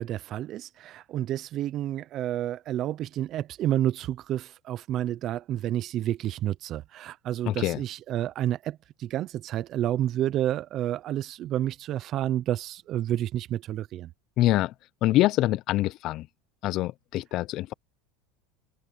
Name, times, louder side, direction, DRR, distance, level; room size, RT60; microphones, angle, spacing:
voice 1, 0.0-14.1, right 12 dB, 45° right, 0.7 m, -30 dB
voice 2, 7.5-7.8 14.4-14.7 15.0-16.3 16.6-17.7, left 16 dB, 50° left, 0.6 m, -25 dB
supercardioid pair, 125°, 0 cm